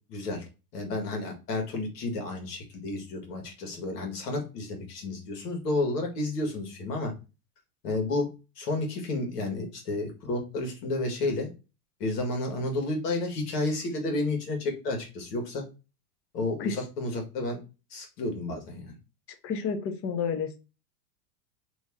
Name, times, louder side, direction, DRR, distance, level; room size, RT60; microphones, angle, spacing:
voice 1, 0.1-0.4 0.7-7.1 7.8-8.3 8.6-11.5 12.0-15.6 16.3-17.6 17.9-18.9, left 2 dB, 80° left, 3 dB, 1.6 m, -31 dB
voice 2, 19.4-20.6, left 6 dB, 30° left, 7 dB, 0.7 m, -30 dB
3.0 x 2.7 x 3.5 m, 0.29 s
supercardioid pair, 120°, 47 cm